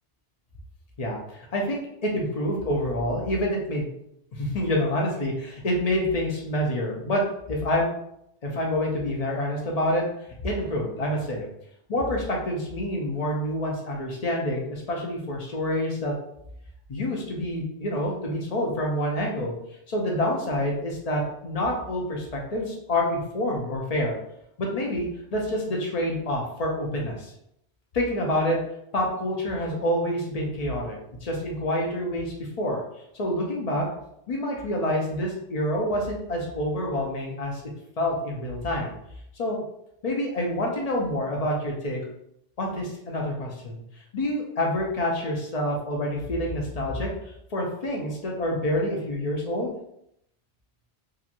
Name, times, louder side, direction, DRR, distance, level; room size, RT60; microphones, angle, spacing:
voice 1, 1.0-3.9 4.3-7.9 8.4-10.1 10.4-11.5 11.9-16.1 16.9-19.5 19.9-24.2 24.6-27.3 27.9-28.6 28.9-32.8 33.1-33.9 34.3-37.6 38.0-38.9 39.4-39.6 40.0-42.0 42.6-43.8 44.1-47.1 47.5-49.7, left 1 dB, 45° left, -1 dB, 0.6 m, -27 dB
2.9 x 2.4 x 2.5 m, 0.75 s
omnidirectional pair, 1.1 m